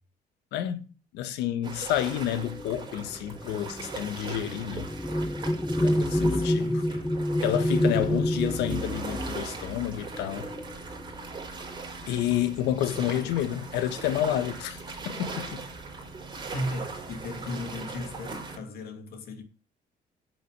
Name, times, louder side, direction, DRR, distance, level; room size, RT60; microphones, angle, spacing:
voice 1, 0.5-0.9 1.1-4.9 5.7-6.8 7.4-10.5 12.1-14.8 15.0-15.6, left 11 dB, 85° left, 1.4 m, -29 dB
sound 1, 1.6-18.6, right 4 dB, 25° right, 4.8 m, -40 dB
sound 2, 2.3-11.3 12.2-12.3 12.7-13.2, left 1 dB, 5° left, 0.5 m, -29 dB
voice 2, 6.3-7.2 12.9-13.4 16.4-19.4, left 1 dB, 65° left, 2.7 m, -37 dB
8.4 x 8.0 x 8.2 m
cardioid pair, 110°, 17 cm